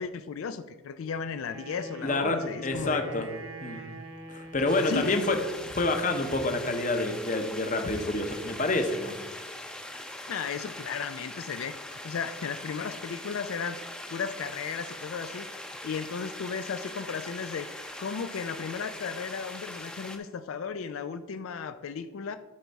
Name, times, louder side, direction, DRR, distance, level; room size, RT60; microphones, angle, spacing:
voice 1, 0.0-3.0 3.8-3.9 4.9-5.2 10.3-11.8 12.0-13.8 14.1-15.5 15.8-17.7 18.0-22.4, left 6 dB, 80° left, 10 dB, 0.4 m, -35 dB
Wind instrument woodwind instrument, 1.4-5.4, right 1 dB, 75° right, 1.2 m, -44 dB
voice 2, 2.0-3.3 3.6-3.8 4.3-5.4 5.7-9.1, left 2 dB, 35° left, 6 dB, 0.8 m, -28 dB
sound 1, 4.7-20.2, left 1 dB, 5° left, 0.6 m, -41 dB
12.0 x 4.6 x 4.1 m, 1.3 s
head